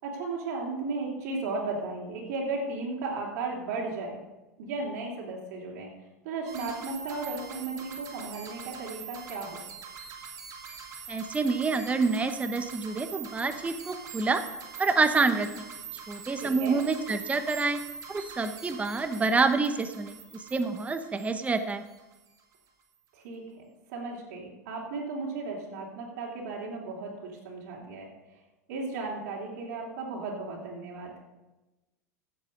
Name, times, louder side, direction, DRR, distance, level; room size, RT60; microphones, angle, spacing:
voice 1, 0.0-4.2 4.6-5.9 6.2-9.6 16.4-16.8 23.1-23.6 23.9-28.1 28.7-31.1, right 3 dB, 65° right, -3 dB, 3.2 m, -35 dB
sound 1, 6.5-22.3, right 6 dB, 40° right, 2.7 m, -44 dB
voice 2, 11.1-14.4 14.8-15.6 16.1-17.8 18.1-20.2 20.5-21.8, right 4 dB, 15° right, 9 dB, 1.0 m, -27 dB
15.5 x 7.8 x 5.3 m, 1.1 s
hypercardioid pair, 95°, 9 cm